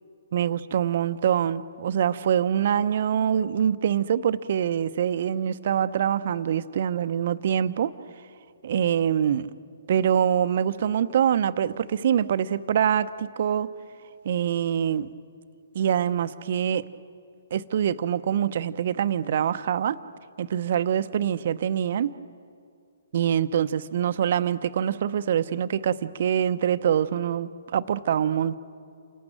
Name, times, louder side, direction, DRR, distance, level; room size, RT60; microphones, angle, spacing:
voice 1, 0.3-7.9 8.6-9.5 9.9-13.7 14.2-15.1 15.7-16.8 17.5-20.0 20.4-22.1 23.1-28.6, right 9 dB, 55° right, 12 dB, 0.9 m, -24 dB
28.5 x 18.5 x 9.1 m, 2.4 s
figure-of-eight pair, 130°, 0 cm